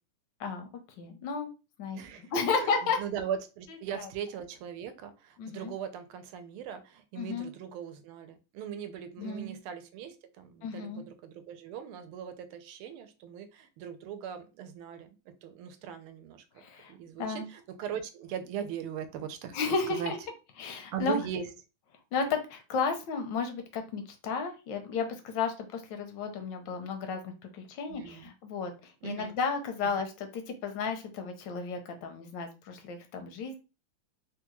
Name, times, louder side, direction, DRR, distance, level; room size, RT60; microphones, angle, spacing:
voice 1, 1.0-1.5 1.8-3.0 3.9-4.1 5.4-5.7 7.2-7.5 9.2-9.6 10.6-11.0 16.6-17.5 19.5-20.2 20.6-21.2 22.1-33.6, left 5 dB, 75° left, 6 dB, 1.1 m, -33 dB
voice 2, 1.9-16.4 16.9-19.6 20.0-20.1 20.9-21.4 27.9-28.3 29.0-29.3, right 8 dB, 85° right, 9 dB, 1.5 m, -40 dB
3.7 x 2.2 x 2.9 m, 0.30 s
omnidirectional pair, 2.4 m